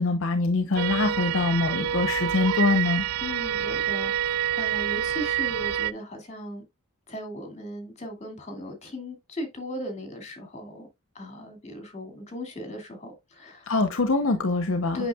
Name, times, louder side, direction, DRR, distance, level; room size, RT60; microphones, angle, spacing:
voice 1, 0.0-3.0 13.7-15.0, left 3 dB, 60° left, 0.8 m, -24 dB
sound 1, 0.8-5.9, right 10 dB, 80° right, 0.4 m, -27 dB
voice 2, 3.2-6.6 7.1-10.9 11.1-13.7 14.9-15.1, equal, 30° left, 2.3 m, -37 dB
8.2 x 6.0 x 2.3 m
head